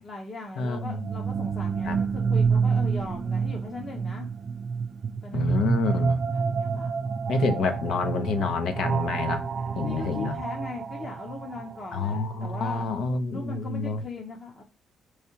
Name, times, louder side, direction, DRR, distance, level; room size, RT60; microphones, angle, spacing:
voice 1, 0.0-4.3 5.2-7.0 9.8-12.9 13.3-14.6, left 2 dB, 35° left, 0.8 m, -39 dB
voice 2, 0.6-1.0 1.8-2.0 5.3-6.2 7.3-9.5 9.7-10.3 11.9-14.0, left 4 dB, 75° left, 0.7 m, -28 dB
sound 1, 0.7-12.6, right 5 dB, 40° right, 0.3 m, -28 dB
sound 2, 4.4-5.4 5.9-6.0, right 2 dB, ahead, 0.7 m, -47 dB
4.7 x 3.2 x 2.8 m
cardioid pair, 120°, 0 cm